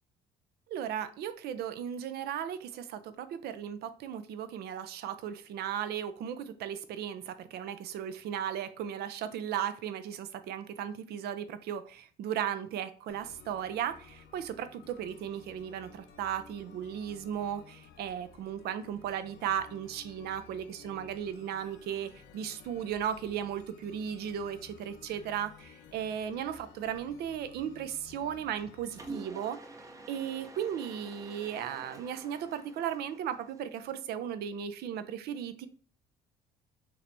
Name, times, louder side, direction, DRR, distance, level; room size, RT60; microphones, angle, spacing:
voice 1, 0.7-29.6 30.1-35.7, right 9 dB, 70° right, 12 dB, 0.6 m, -36 dB
sound 1, 13.1-29.1, left 5 dB, 75° left, 0.8 m, -55 dB
Mechanisms, 28.9-34.0, right 2 dB, 20° right, 0.6 m, -48 dB
5.6 x 3.4 x 2.6 m, 0.43 s
cardioid pair, 110°, 17 cm